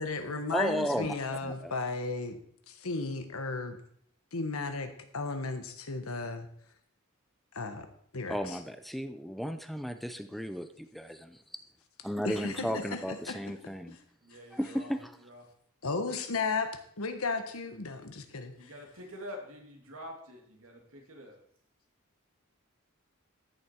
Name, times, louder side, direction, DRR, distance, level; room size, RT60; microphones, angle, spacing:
voice 1, 0.0-2.4 2.7-3.8 4.3-6.5 7.5-7.9 8.1-8.6 12.2-13.0 13.3-13.4 15.8-16.7 17.0-18.7, left 3 dB, 85° left, 7 dB, 1.4 m, -34 dB
voice 2, 0.5-1.7 8.3-11.4 12.0-14.0 14.5-15.1, equal, ahead, 9 dB, 0.6 m, -34 dB
voice 3, 14.2-14.9 15.2-15.4 18.6-21.4, equal, 80° right, 1 dB, 2.8 m, -47 dB
14.0 x 6.9 x 4.7 m, 0.65 s
head